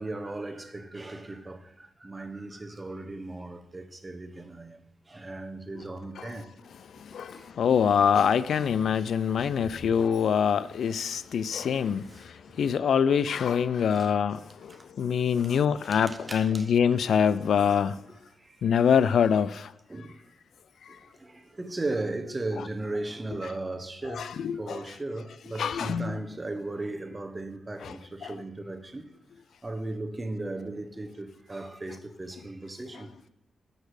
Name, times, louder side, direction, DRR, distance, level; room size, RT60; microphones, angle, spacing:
voice 1, 0.0-6.5 7.3-7.6 10.8-11.4 12.1-12.3 13.9-14.1 14.7-14.9 15.9-16.7 18.4-18.7 19.9-20.2 20.9-29.1 29.6-33.1, right 2 dB, 25° right, 1.0 m, -37 dB
voice 2, 7.0-18.0 18.6-19.7 24.1-24.8 25.6-26.2 27.8-27.9 28.2-28.3, left 7 dB, 75° left, 0.3 m, -25 dB
6.6 x 5.6 x 4.9 m
cardioid pair, 65°, 0 cm